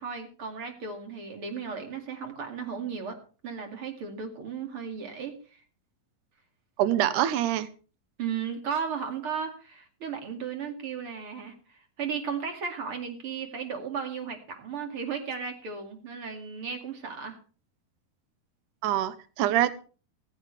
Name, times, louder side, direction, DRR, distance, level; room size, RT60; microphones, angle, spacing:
voice 1, 0.0-3.2 3.4-5.6 8.2-17.4, right 6 dB, 40° right, 4 dB, 2.8 m, -35 dB
voice 2, 6.8-7.7 18.8-19.7, right 12 dB, 70° right, 14 dB, 2.2 m, -25 dB
16.0 x 15.0 x 3.3 m, 0.38 s
omnidirectional pair, 4.1 m